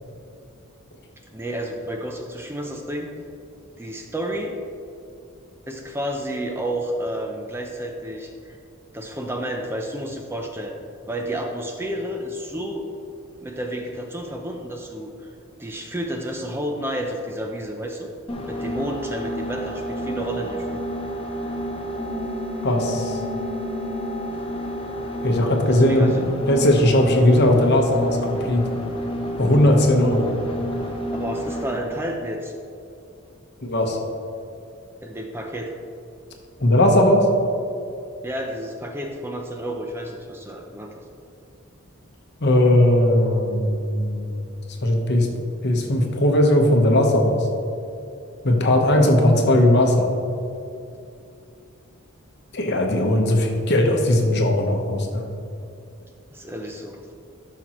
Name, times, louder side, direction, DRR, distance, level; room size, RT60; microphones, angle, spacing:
voice 1, 1.3-3.1 3.8-4.6 5.7-8.6 8.9-10.8 11.1-12.9 13.4-15.3 15.6-18.1 18.5-20.8 25.7-26.5 31.1-32.5 35.0-35.7 38.2-40.9 56.3-57.1, right 1 dB, 10° right, 2 dB, 0.5 m, -31 dB
sound 1, 18.3-31.8, equal, 25° left, 0.8 m, -30 dB
voice 2, 22.6-23.2 25.2-26.1 26.5-28.7 29.4-30.3 33.6-34.0 36.6-37.3 42.4-44.5 44.8-45.3 45.6-47.4 48.4-50.1 52.5-55.2, left 1 dB, 55° left, 2 dB, 1.0 m, -18 dB
12.0 x 6.0 x 3.0 m, 2.6 s
head